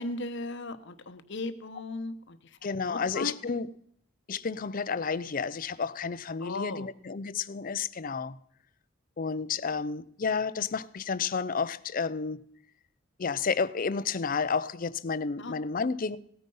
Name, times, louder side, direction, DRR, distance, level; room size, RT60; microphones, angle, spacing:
voice 1, 0.0-2.4 2.8-3.3 6.4-6.9 15.4-15.5, left 2 dB, 55° left, 0.9 m, -36 dB
voice 2, 2.6-3.7 4.3-8.4 9.2-12.4 13.2-16.2, left 5 dB, 40° left, 0.5 m, -31 dB
17.5 x 9.3 x 5.4 m
head